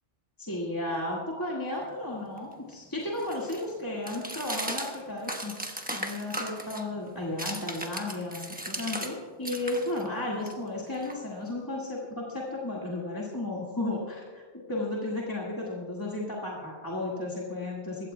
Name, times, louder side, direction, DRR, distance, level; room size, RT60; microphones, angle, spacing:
voice 1, 0.4-5.5 5.9-14.4 14.7-18.1, left 2 dB, 15° left, -5 dB, 1.8 m, -34 dB
sound 1, 1.8-9.2 9.4-11.6, right 1 dB, 10° right, 1.0 m, -38 dB
21.5 x 16.0 x 2.3 m, 1.5 s
omnidirectional pair, 1.2 m